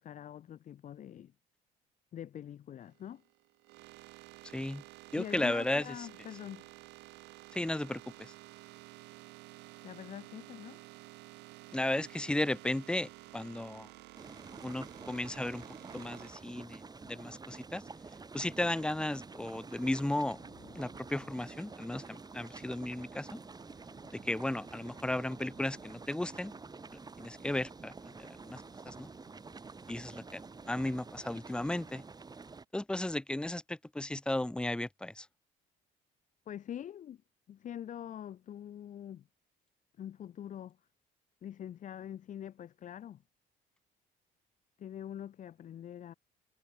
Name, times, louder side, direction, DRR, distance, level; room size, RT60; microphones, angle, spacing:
voice 1, 0.0-1.3 2.1-3.2 5.1-6.7 9.8-10.8 36.5-37.2 37.5-39.3 40.0-40.8 41.4-43.2 44.8-46.1, left 10 dB, 50° left, 0.9 m, -44 dB
sound 1, 2.8-16.3, right 20 dB, 90° right, 4.8 m, -52 dB
voice 2, 4.5-4.8 5.1-5.9 7.5-8.3 11.7-13.9 14.6-15.6 15.9-17.8 18.3-20.4 20.7-23.4 24.1-26.5 26.9-29.1 29.9-30.4 30.7-32.0 32.7-35.3, left 1 dB, 5° left, 0.9 m, -35 dB
Rain, 13.2-30.8, left 13 dB, 70° left, 6.9 m, -68 dB
sound 2, 14.1-32.7, right 4 dB, 25° right, 4.3 m, -49 dB
cardioid pair, 110°, 17 cm